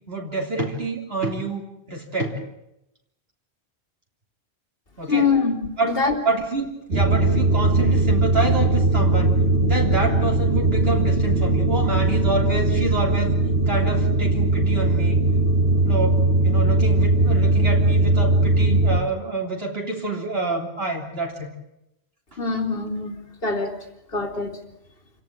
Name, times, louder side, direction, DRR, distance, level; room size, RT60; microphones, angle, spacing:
voice 1, 0.1-2.4 5.0-5.3 5.8-6.0 6.2-9.3 9.6-13.4 13.7-15.2 15.8-21.5, right 3 dB, 65° right, -1 dB, 3.7 m, -27 dB
voice 2, 5.1-5.5 5.9-6.2 22.4-23.2 23.4-23.7 24.1-24.6, left 4 dB, 60° left, 3 dB, 3.2 m, -23 dB
sound 1, 6.9-19.0, right 2 dB, 85° right, 3.4 m, -19 dB
28.5 x 17.5 x 9.0 m, 0.85 s
omnidirectional pair, 1.1 m